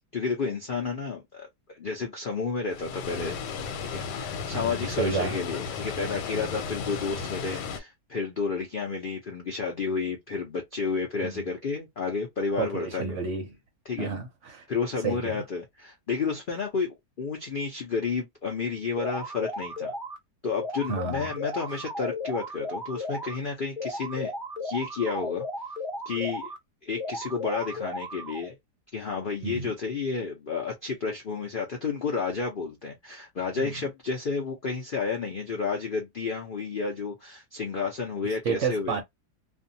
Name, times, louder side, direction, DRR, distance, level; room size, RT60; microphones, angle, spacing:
voice 1, 0.1-1.5 1.8-3.4 3.9-13.2 13.9-14.1 14.7-19.9 20.4-24.3 24.6-25.4 26.1-26.5 26.8-28.6 28.9-39.0, left 4 dB, 65° left, 0.5 m, -31 dB
Water, 2.7-7.8, left 6 dB, 85° left, 1.3 m, -34 dB
voice 2, 4.5-5.4 11.2-11.5 12.6-13.5 14.0-14.7 15.0-15.4 20.9-21.3 29.4-29.7 33.6-33.7 38.4-39.0, right 5 dB, 60° right, 0.8 m, -31 dB
sound 1, 19.0-20.2 20.6-23.4 23.8-26.6 27.0-28.5, left 1 dB, ahead, 0.7 m, -35 dB
2.6 x 2.3 x 2.6 m
omnidirectional pair, 1.8 m